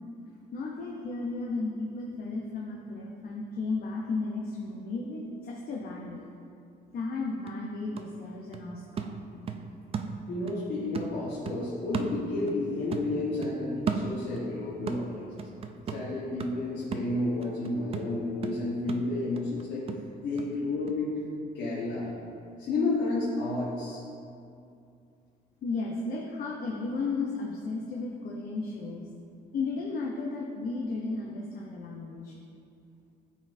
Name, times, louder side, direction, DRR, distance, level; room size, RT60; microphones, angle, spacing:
voice 1, 0.5-6.3 6.9-9.2 25.6-29.1 29.5-32.3, left 3 dB, 55° left, -2 dB, 0.7 m, -34 dB
sound 1, 7.0-7.1 7.5-10.6 10.9-12.7 12.9-14.5 14.9-20.5 20.9-21.0, right 5 dB, 35° right, 0.4 m, -36 dB
voice 2, 10.3-15.3 15.9-19.9 20.2-21.1 21.5-22.1 22.6-24.0, left 2 dB, 85° left, -7 dB, 1.3 m, -31 dB
12.0 x 4.2 x 2.6 m, 2.5 s
cardioid pair, 145°, 18 cm